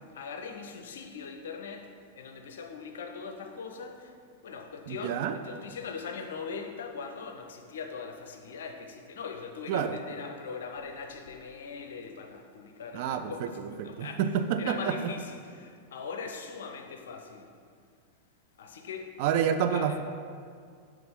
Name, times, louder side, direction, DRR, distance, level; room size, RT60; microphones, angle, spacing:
voice 1, 0.1-4.1 4.4-14.3 14.6-17.5 18.6-19.2 19.7-20.0, left 5 dB, 60° left, 0.5 m, -41 dB
voice 2, 4.9-5.4 9.7-10.0 12.9-13.5 13.8-15.1 19.2-20.0, right 8 dB, 50° right, 0.3 m, -28 dB
5.9 x 3.0 x 5.2 m
figure-of-eight pair, 90°, 0 cm